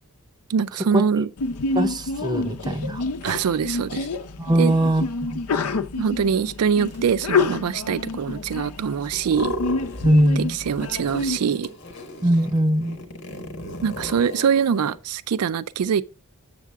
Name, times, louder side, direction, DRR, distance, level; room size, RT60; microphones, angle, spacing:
voice 1, 0.5-1.3 3.2-4.1 4.6-4.9 6.0-9.6 10.4-11.7 13.8-16.0, right 7 dB, 80° right, 0.4 m, -23 dB
Sneeze, 1.4-11.4, left 3 dB, 90° left, 0.6 m, -28 dB
voice 2, 1.8-3.0 4.4-5.6 10.0-10.6 12.2-13.0, equal, 20° right, 0.6 m, -21 dB
sound 1, 4.7-14.7, right 2 dB, 50° right, 2.3 m, -49 dB
sound 2, 9.1-10.3 10.6-15.0, left 1 dB, 55° left, 1.5 m, -35 dB
7.3 x 7.0 x 3.5 m
head